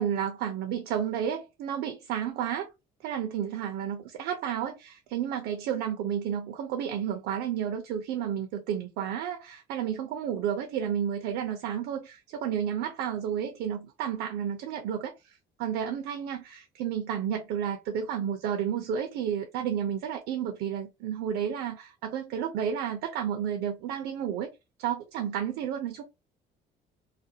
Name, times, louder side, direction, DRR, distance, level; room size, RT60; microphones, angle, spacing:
voice 1, 0.0-2.7 3.0-24.5 24.8-26.0, right 9 dB, 90° right, 0.5 m, -31 dB
2.4 x 2.2 x 2.7 m
cardioid pair, 110°, 17 cm